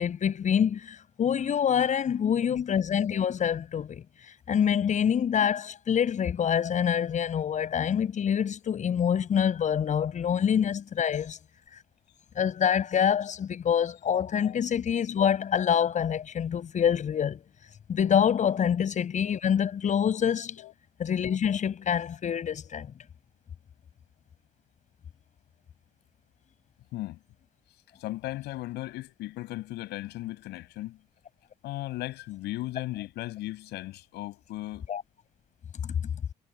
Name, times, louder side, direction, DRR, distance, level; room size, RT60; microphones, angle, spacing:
voice 1, 0.0-11.4 12.4-17.4 17.9-20.6 21.0-22.9 34.9-35.0 35.8-35.9, left 8 dB, 45° left, 7.6 m, -26 dB
voice 2, 28.0-31.0 31.6-34.9, left 17 dB, 85° left, 6.8 m, -36 dB
cardioid pair, 110°, 17 cm